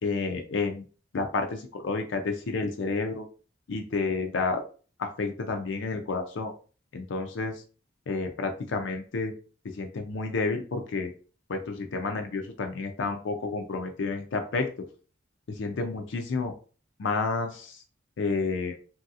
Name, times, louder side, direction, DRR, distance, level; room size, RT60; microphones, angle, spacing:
voice 1, 0.0-0.8 1.1-3.2 3.7-4.6 5.0-6.5 6.9-7.6 8.1-9.3 9.8-11.1 11.5-14.7 15.5-16.5 17.0-17.8 18.2-18.8, left 3 dB, 80° left, 4 dB, 0.5 m, -30 dB
3.1 x 2.7 x 2.4 m, 0.38 s
head